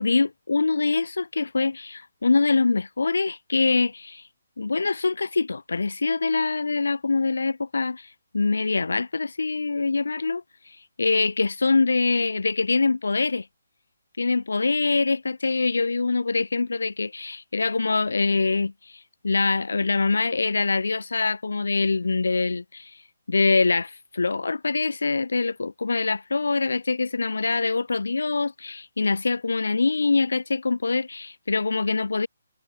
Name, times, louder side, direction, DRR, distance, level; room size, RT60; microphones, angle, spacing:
voice 1, 0.0-4.2 4.6-13.5 14.2-23.0 23.3-32.3, left 3 dB, 80° left, 6.0 m, -24 dB
figure-of-eight pair, 150°, 0 cm